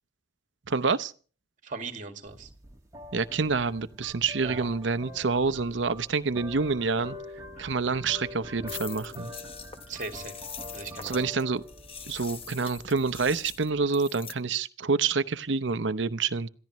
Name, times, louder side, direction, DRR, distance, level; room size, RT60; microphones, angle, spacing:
voice 1, 0.7-1.1 3.1-7.2 7.6-9.3 11.0-11.6 12.1-16.5, right 4 dB, 70° right, 0.7 m, -27 dB
voice 2, 1.6-2.5 4.4-4.7 9.9-10.4 10.7-11.3, right 4 dB, 40° right, 2.1 m, -38 dB
sound 1, 2.3-13.9, left 1 dB, 15° right, 1.9 m, -45 dB
sound 2, 8.7-14.3, left 7 dB, 30° left, 0.9 m, -43 dB
27.0 x 15.0 x 3.1 m
head